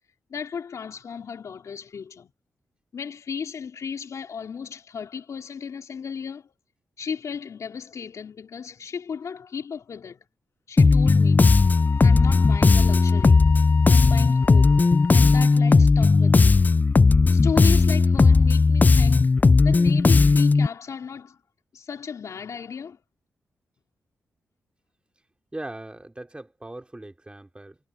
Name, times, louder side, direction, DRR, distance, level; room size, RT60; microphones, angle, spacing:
voice 1, 0.3-2.3 2.9-6.5 7.0-10.2 10.7-11.6 12.0-13.5 13.9-14.8 15.1-16.7 17.3-19.3 19.6-21.4 21.7-23.0, left 6 dB, 65° left, 3.6 m, -35 dB
Bass guitar, 10.8-20.7, left 4 dB, 30° left, 0.4 m, -17 dB
Wind instrument woodwind instrument, 11.4-15.6, left 6 dB, 50° left, 1.6 m, -37 dB
voice 2, 25.5-27.8, right 1 dB, 20° right, 4.0 m, -39 dB
cardioid pair, 55°, 6 cm